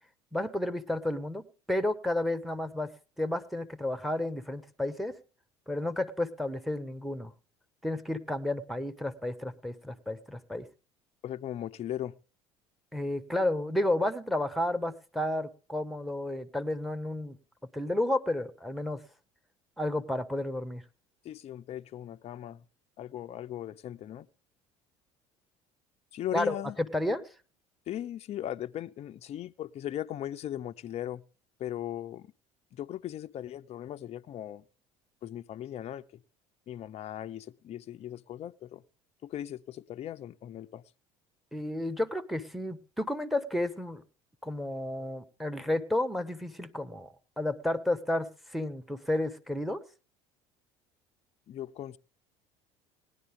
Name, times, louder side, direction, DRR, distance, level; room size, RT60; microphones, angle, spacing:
voice 1, 0.3-2.9 3.2-5.2 5.7-7.3 7.8-10.7 12.9-17.4 17.7-19.0 19.8-20.8 26.3-27.2 41.5-44.0 44.4-49.8, left 1 dB, ahead, 1.3 m, -31 dB
voice 2, 11.2-12.2 21.2-22.6 23.0-24.3 26.1-26.8 27.9-31.2 31.6-32.3 32.7-34.6 35.2-36.2 36.7-38.8 39.2-40.8 51.5-52.0, left 11 dB, 40° left, 0.5 m, -38 dB
18.5 x 11.0 x 3.6 m
hypercardioid pair, 70°, 16 cm